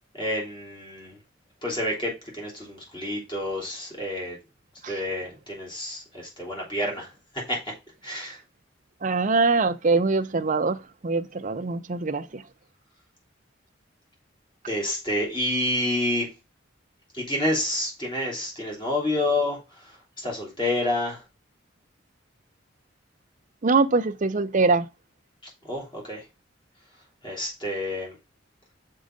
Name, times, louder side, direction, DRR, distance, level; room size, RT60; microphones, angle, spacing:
voice 1, 0.1-1.2 1.6-4.4 4.9-7.1 7.3-7.7 8.0-8.4 14.7-16.3 17.1-21.2 25.4-26.2 27.2-28.2, left 1 dB, 25° left, 3.2 m, -29 dB
voice 2, 9.0-12.4 23.6-24.9, right 3 dB, 40° right, 0.6 m, -23 dB
6.5 x 4.6 x 5.1 m
head